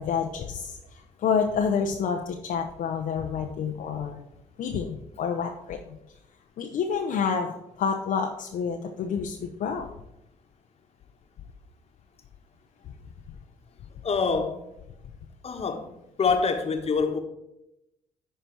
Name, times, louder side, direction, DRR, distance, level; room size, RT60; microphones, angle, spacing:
voice 1, 0.0-4.2 4.6-6.0 6.6-9.9, left 6 dB, 60° left, 0.8 m, -28 dB
voice 2, 14.0-14.6 15.4-15.9 16.2-17.2, left 5 dB, 40° left, 1.3 m, -25 dB
10.5 x 4.4 x 4.6 m
hypercardioid pair, 55°, 16 cm